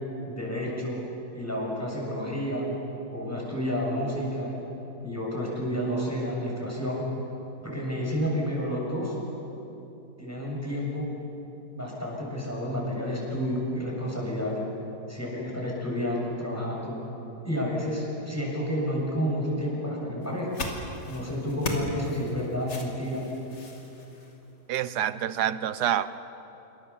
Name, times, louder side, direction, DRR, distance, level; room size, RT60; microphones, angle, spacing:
voice 1, 0.3-1.0 1.3-2.7 3.1-4.6 5.0-7.1 7.6-9.1 10.2-11.1 11.7-14.6 15.1-16.9 17.4-20.6 21.1-23.2, equal, 10° left, -3 dB, 7.3 m, -30 dB
sound 1, 20.2-24.9, left 2 dB, 75° left, 3.5 m, -37 dB
voice 2, 24.7-26.1, right 11 dB, 70° right, 14 dB, 1.3 m, -27 dB
27.5 x 24.5 x 7.2 m, 3.0 s
omnidirectional pair, 1.9 m